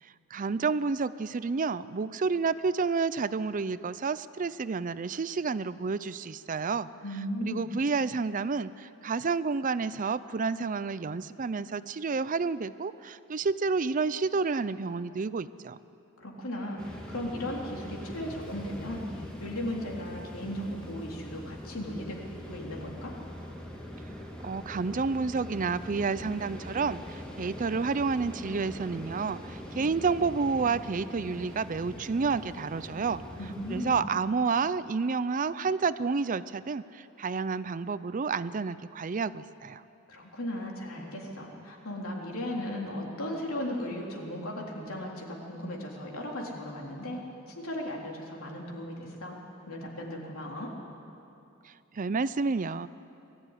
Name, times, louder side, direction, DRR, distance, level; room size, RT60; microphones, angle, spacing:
voice 1, 0.0-6.9 7.4-15.8 24.4-33.2 33.7-39.8 51.6-52.9, right 4 dB, 40° right, 15 dB, 0.5 m, -30 dB
voice 2, 7.0-7.7 16.2-23.2 33.4-34.0 40.1-47.2 47.5-49.4 49.7-50.7, left 1 dB, 80° left, -1 dB, 3.6 m, -36 dB
sound 1, 16.8-34.0, equal, 5° left, 2.5 m, -42 dB
21.5 x 14.0 x 9.9 m, 2.8 s
head